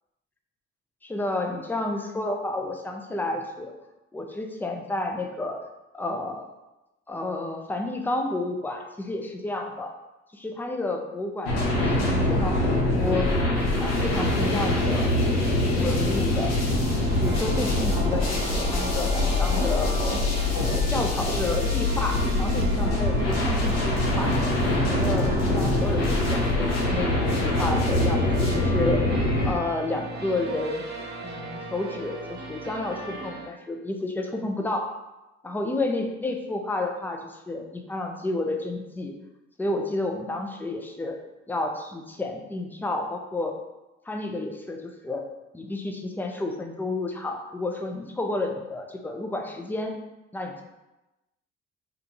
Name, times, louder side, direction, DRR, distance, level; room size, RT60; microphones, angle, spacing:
voice 1, 1.0-3.7 4.1-5.6 5.9-6.5 7.1-9.9 10.3-12.6 12.9-13.3 13.8-15.1 15.8-16.5 17.2-19.9 20.6-24.3 24.7-29.0 29.4-30.8 31.2-34.9 35.4-39.1 39.6-41.2 41.5-43.5 44.1-45.2 45.5-49.9 50.3-50.6, left 2 dB, 5° left, 3 dB, 0.4 m, -31 dB
sound 1, 11.4-29.5, left 2 dB, 60° left, 0.8 m, -24 dB
sound 2, 16.0-33.5, right 2 dB, 30° right, 0.8 m, -38 dB
2.4 x 2.2 x 2.8 m, 1.0 s
hypercardioid pair, 50°, 30 cm